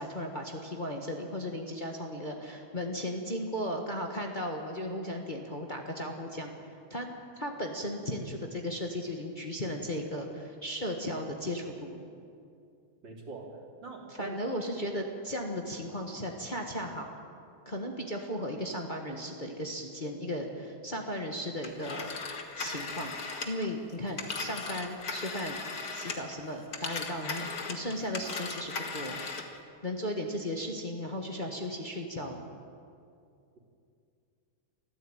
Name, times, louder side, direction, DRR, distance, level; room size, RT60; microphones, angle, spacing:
voice 1, 0.0-6.5 6.9-7.1 7.4-12.0 14.1-17.1 17.6-22.1 22.6-23.2 23.4-25.6 25.9-29.2 29.8-32.4, equal, 25° left, 1 dB, 1.5 m, -36 dB
voice 2, 13.0-13.5 13.8-14.4, right 4 dB, 60° right, 0 dB, 3.8 m, -42 dB
Telephone, 21.6-26.4 26.7-29.6, left 4 dB, 45° left, 2.1 m, -38 dB
24.0 x 14.5 x 9.0 m, 2.5 s
omnidirectional pair, 2.2 m